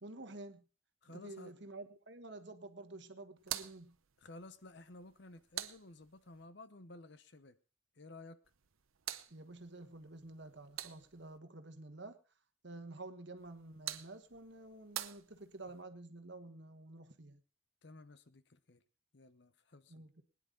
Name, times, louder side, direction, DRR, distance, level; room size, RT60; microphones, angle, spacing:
voice 1, 0.0-0.6 1.1-4.0 9.3-12.2 12.6-17.4 19.9-20.2, right 2 dB, 55° right, 1.4 m, -50 dB
voice 2, 1.0-1.5 4.2-7.6 8.0-8.4 17.8-18.8 19.1-20.0, left 2 dB, 55° left, 0.8 m, -54 dB
sound 1, 3.4-6.5 8.4-11.4 13.4-15.8, right 12 dB, 85° right, 0.8 m, -48 dB
20.5 x 10.0 x 3.8 m
head